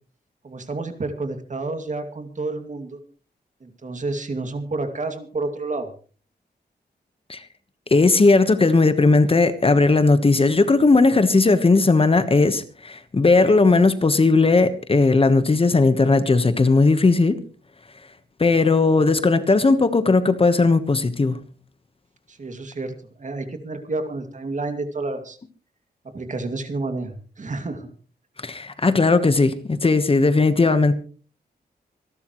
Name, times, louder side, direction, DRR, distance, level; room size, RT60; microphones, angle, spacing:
voice 1, 0.4-3.0 3.6-5.9 22.3-25.4 26.1-27.9, right 3 dB, 45° right, 2.4 m, -30 dB
voice 2, 7.9-17.4 18.4-21.4 28.4-30.9, left 3 dB, 30° left, 1.2 m, -17 dB
26.0 x 12.0 x 3.1 m
wide cardioid pair, 115°, 17 cm